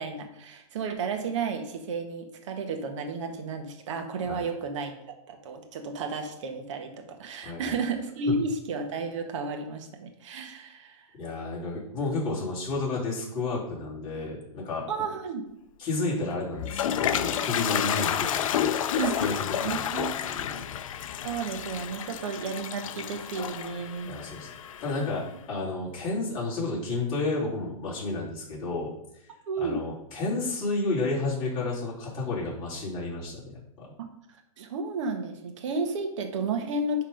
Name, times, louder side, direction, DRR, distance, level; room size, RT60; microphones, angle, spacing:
voice 1, 0.0-4.9 5.3-11.1 14.9-15.5 19.0-20.2 21.2-24.1 29.5-29.8 34.0-34.1 34.6-37.0, right 4 dB, 60° right, 4 dB, 1.5 m, -32 dB
voice 2, 7.4-7.7 11.1-15.1 15.8-18.7 19.2-20.6 24.1-24.5 24.8-28.9 29.2-29.3 29.6-33.9, left 3 dB, 25° left, -6 dB, 3.3 m, -31 dB
Toilet flush, 16.3-25.2, left 9 dB, 65° left, 0.6 m, -30 dB
10.5 x 3.7 x 5.2 m, 0.80 s
hypercardioid pair, 150°, 18 cm